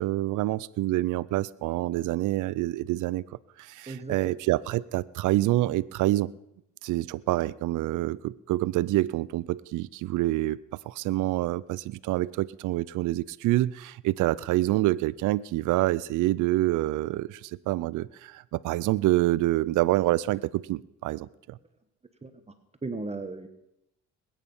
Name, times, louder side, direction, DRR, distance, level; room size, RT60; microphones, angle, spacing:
voice 1, 0.0-3.2 3.6-6.3 6.8-10.6 10.9-21.6, right 16 dB, 80° right, 0.5 m, -27 dB
voice 2, 3.9-4.3 22.2-22.3 22.8-23.5, right 3 dB, 20° right, 1.2 m, -35 dB
21.0 x 9.1 x 5.5 m
cardioid pair, 90°, 30 cm